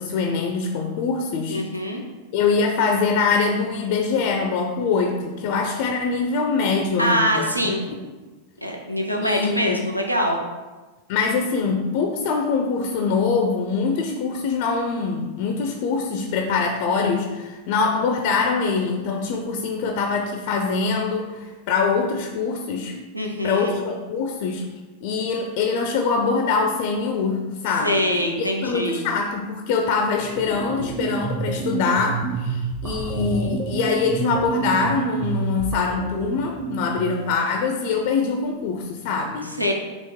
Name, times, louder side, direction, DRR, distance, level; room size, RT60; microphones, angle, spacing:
voice 1, 0.0-1.6 2.3-7.7 9.2-9.8 11.1-23.0 23.4-24.7 25.0-28.0 28.4-39.6, left 4 dB, 45° left, 3 dB, 0.4 m, -23 dB
voice 2, 1.5-2.0 7.0-7.8 8.6-10.4 23.1-23.7 27.8-29.0 39.6-39.7, equal, 90° right, 1 dB, 0.5 m, -23 dB
sound 1, 30.1-37.3, right 4 dB, 25° right, 0.3 m, -29 dB
4.2 x 2.9 x 3.5 m, 1.2 s
figure-of-eight pair, 90°, 0 cm